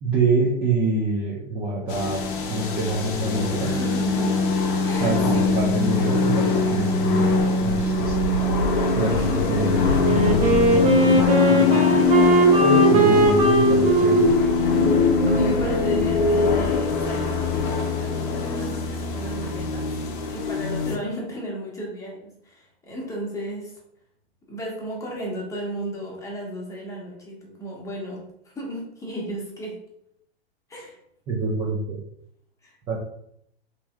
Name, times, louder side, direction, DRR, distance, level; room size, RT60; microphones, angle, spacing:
voice 1, 0.0-3.8 5.0-8.2 8.6-12.1 12.6-14.4 31.3-32.0 32.9-33.0, right 2 dB, 20° right, -3 dB, 0.4 m, -26 dB
sound 1, 1.9-21.0, left 4 dB, 50° left, 0.7 m, -22 dB
voice 2, 3.6-4.6 4.9-5.5 9.1-9.5 15.3-19.9 20.3-22.2 22.4-23.8 24.5-29.8 30.7-31.0 32.6-33.0, right 1 dB, 10° left, -3 dB, 0.8 m, -34 dB
Wind instrument woodwind instrument, 9.9-16.7, right 2 dB, 65° right, 0.8 m, -20 dB
3.2 x 2.7 x 2.2 m, 0.73 s
hypercardioid pair, 120°, 32 cm